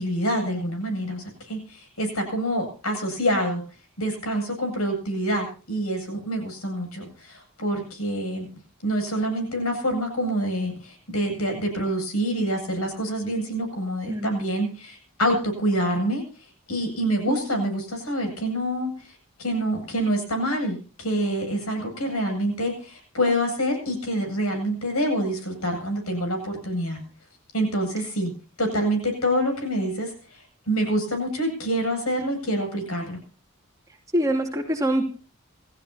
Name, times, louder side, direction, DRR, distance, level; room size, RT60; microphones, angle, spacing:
voice 1, 0.0-3.6 4.0-8.4 8.8-16.2 16.7-27.0 27.5-28.3 28.6-33.2, equal, 90° left, 4 dB, 8.0 m, -26 dB
voice 2, 34.1-35.1, right 1 dB, 15° right, 0 dB, 3.1 m, -24 dB
28.0 x 15.0 x 2.9 m, 0.37 s
head